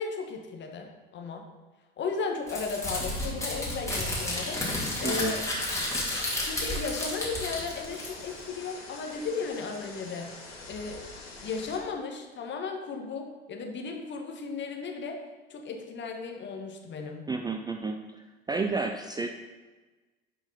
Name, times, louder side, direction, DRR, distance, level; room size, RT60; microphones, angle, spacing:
voice 1, 0.0-1.5 2.0-5.4 6.4-10.3 10.7-11.0 11.4-15.2 15.5-17.2, left 4 dB, 35° left, 3 dB, 1.5 m, -35 dB
Crumpling crinkling, 2.5-8.4, left 1 dB, 10° left, 2.7 m, -32 dB
sound 1, 4.0-11.8, left 3 dB, 75° left, 2.0 m, -45 dB
voice 2, 5.0-5.4 17.3-19.3, right 4 dB, 15° right, 5 dB, 0.5 m, -31 dB
10.0 x 5.0 x 4.1 m, 1.3 s
figure-of-eight pair, 70°, 31 cm